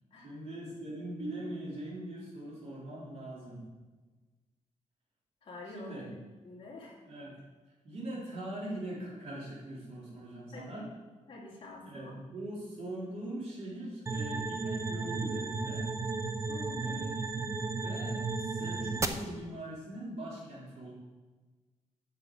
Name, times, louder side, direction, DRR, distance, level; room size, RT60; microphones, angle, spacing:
voice 1, 0.2-3.6 5.6-6.1 7.0-7.4 7.8-10.9 11.8-15.9 16.8-20.9, right 1 dB, 60° right, -5 dB, 3.9 m, -42 dB
voice 2, 5.4-6.0 6.4-7.0 10.5-10.8 11.3-12.1 16.5-17.1, left 2 dB, 45° left, -3 dB, 2.5 m, -47 dB
sound 1, 14.1-19.1, right 4 dB, 25° right, 0.7 m, -34 dB
8.1 x 6.9 x 7.7 m, 1.3 s
wide cardioid pair, 150°, 13 cm